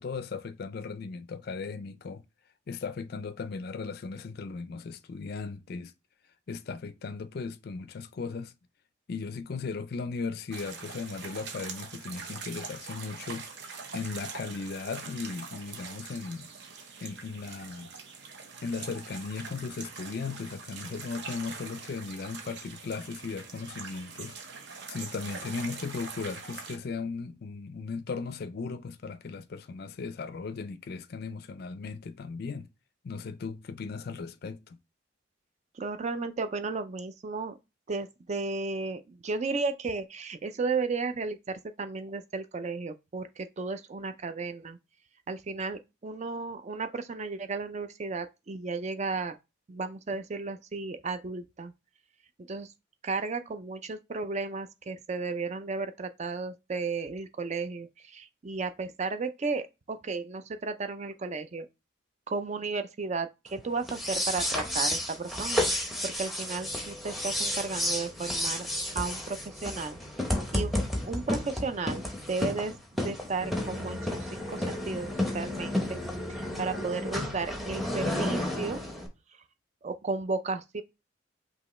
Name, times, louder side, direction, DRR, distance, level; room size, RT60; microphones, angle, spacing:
voice 1, 0.0-2.2 2.7-5.9 6.5-8.5 9.1-13.5 13.9-16.5 17.0-17.9 18.6-24.4 24.9-32.7 33.0-34.8, left 4 dB, 50° left, 0.4 m, -37 dB
sound 1, 10.5-26.8, right 5 dB, 60° right, 0.8 m, -43 dB
voice 2, 35.7-37.6 37.9-44.8 45.3-49.4 49.7-51.7 52.5-52.7 53.0-61.7 62.3-68.7 68.9-70.0 70.5-70.8 71.0-72.8 73.0-75.1 75.3-76.0 76.3-78.8 79.8-80.8, right 4 dB, 35° right, 0.4 m, -34 dB
sound 2, 63.8-79.1, left 1 dB, ahead, 0.8 m, -32 dB
5.3 x 2.8 x 3.1 m
head